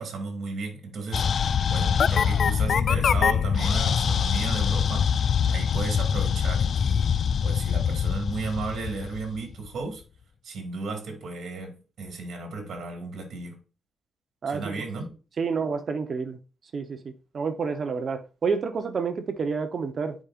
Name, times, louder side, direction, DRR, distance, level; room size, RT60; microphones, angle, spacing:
voice 1, 0.0-5.1 5.5-7.1 7.4-10.0 10.4-13.6 14.5-15.1, right 4 dB, 60° right, 2.3 m, -34 dB
sound 1, 1.1-9.7, left 7 dB, 50° left, 0.3 m, -24 dB
voice 2, 14.4-14.8 15.4-16.4 16.7-17.0 17.3-20.2, right 5 dB, 45° right, 0.9 m, -29 dB
9.7 x 5.1 x 2.5 m
cardioid pair, 135°, 0 cm